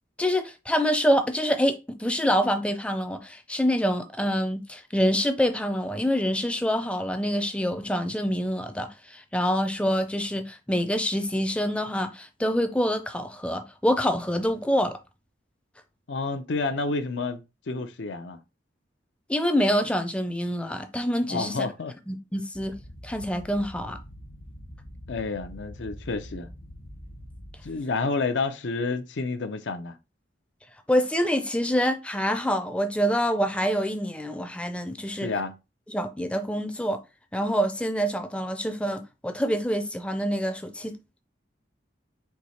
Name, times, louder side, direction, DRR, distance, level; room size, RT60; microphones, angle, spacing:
voice 1, 0.2-15.0 19.3-21.7 22.1-24.0 30.9-35.3 35.9-37.0 37.3-41.0, equal, 5° left, 0.4 m, -26 dB
voice 2, 16.1-17.4 17.7-18.4 21.3-21.9 25.1-26.5 27.6-30.0 35.1-35.5, left 3 dB, 75° left, 0.6 m, -29 dB
sound 1, 22.5-27.8, equal, 55° left, 1.0 m, -44 dB
4.6 x 2.7 x 4.2 m
head